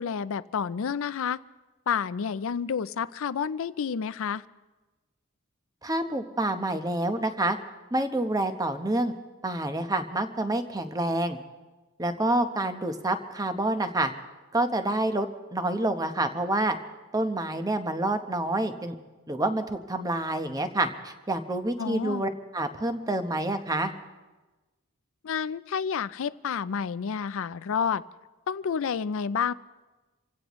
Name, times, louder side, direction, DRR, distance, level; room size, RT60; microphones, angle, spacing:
voice 1, 0.0-1.4 1.9-4.4 21.8-22.2 25.2-28.0 28.5-29.5, left 6 dB, 65° left, 17 dB, 0.4 m, -29 dB
voice 2, 5.8-7.6 7.9-9.1 9.4-11.4 12.0-14.1 14.5-16.8 17.1-19.0 19.3-23.9, right 1 dB, 15° right, 8 dB, 0.9 m, -28 dB
27.5 x 16.5 x 3.1 m, 1.2 s
head